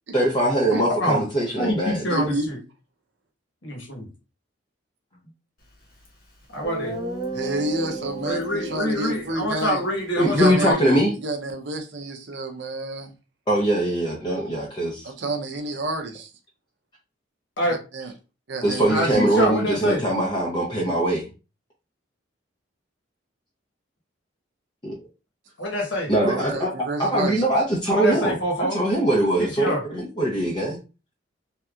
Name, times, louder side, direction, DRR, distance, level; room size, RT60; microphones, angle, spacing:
voice 1, 0.1-2.3 10.2-11.1 13.5-15.1 18.6-21.3 24.8-25.0 26.1-26.7 27.0-28.3 28.7-30.8, right 1 dB, 25° left, -3 dB, 0.6 m, -22 dB
voice 2, 1.6-2.6 3.6-4.1 6.5-7.0 8.2-11.0 17.6-17.8 18.9-20.0 25.6-26.1 27.9-28.8 29.4-29.8, left 1 dB, 75° left, -1 dB, 1.2 m, -26 dB
voice 3, 2.1-2.5 7.3-9.8 10.3-10.8 11.2-13.1 15.0-16.3 17.9-18.1 18.5-19.1 26.2-27.4, right 2 dB, 65° right, 4 dB, 0.7 m, -29 dB
Guitar, 6.0-6.1 6.6-10.7, right 2 dB, 50° left, 1.0 m, -34 dB
3.3 x 2.8 x 2.4 m, 0.31 s
head